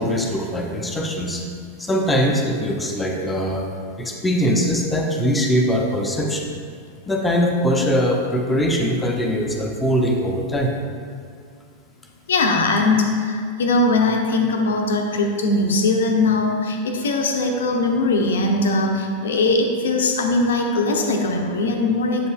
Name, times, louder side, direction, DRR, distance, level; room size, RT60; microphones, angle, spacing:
voice 1, 0.0-1.4 1.8-3.7 4.0-6.5 7.1-10.8, equal, 10° left, 0 dB, 0.6 m, -21 dB
voice 2, 12.3-22.3, left 2 dB, 65° left, 3 dB, 0.6 m, -20 dB
7.8 x 5.3 x 2.3 m, 2.1 s
figure-of-eight pair, 90°, 0 cm